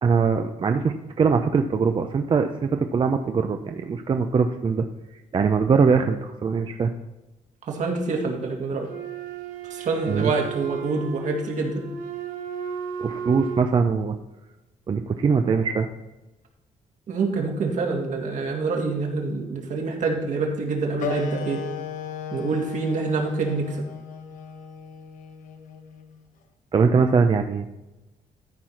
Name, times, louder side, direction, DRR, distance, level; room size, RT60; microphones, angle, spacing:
voice 1, 0.0-4.8 5.3-6.9 10.1-10.3 13.0-14.2 14.9-15.9 26.7-27.8, right 5 dB, 35° right, 6 dB, 0.6 m, -22 dB
voice 2, 7.7-8.9 9.7-11.8 17.1-21.6 22.3-23.8, right 4 dB, 65° right, 1 dB, 2.2 m, -26 dB
Wind instrument woodwind instrument, 8.9-13.8, right 6 dB, 85° right, 1.5 m, -34 dB
Wind instrument woodwind instrument 2, 21.0-26.1, left 6 dB, 75° left, 1.1 m, -35 dB
13.0 x 4.7 x 5.8 m, 1.0 s
cardioid pair, 105°, 14 cm